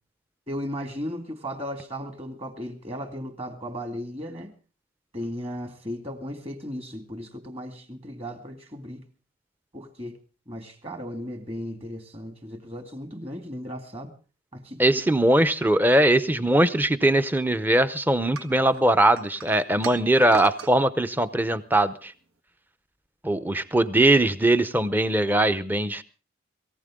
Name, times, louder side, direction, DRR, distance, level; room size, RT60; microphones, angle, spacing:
voice 1, 0.5-4.5 5.1-9.1 9.7-10.2 10.5-14.1 14.5-14.8, equal, 25° right, 2.0 m, -36 dB
voice 2, 14.8-22.1 23.2-26.0, right 1 dB, 10° right, 0.7 m, -21 dB
sound 1, 18.3-20.7, right 4 dB, 80° right, 1.9 m, -38 dB
22.0 x 15.5 x 3.7 m
head